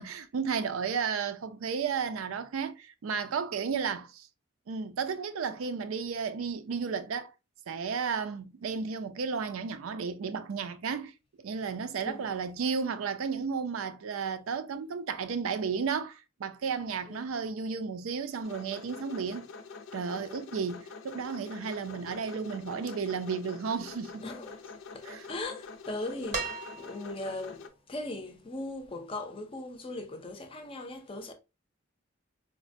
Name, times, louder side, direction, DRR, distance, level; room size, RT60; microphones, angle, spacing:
voice 1, 0.0-4.3 4.7-7.3 7.7-11.1 11.4-19.5 19.9-24.2 25.1-25.2, right 5 dB, 90° right, 0.4 m, -33 dB
sound 1, 18.4-27.7, left 4 dB, 80° left, 0.5 m, -46 dB
voice 2, 24.2-31.3, left 2 dB, 25° left, 0.4 m, -39 dB
sound 2, 26.3-27.3 28.9-29.0, right 4 dB, 35° right, 0.6 m, -36 dB
4.0 x 2.1 x 2.5 m
head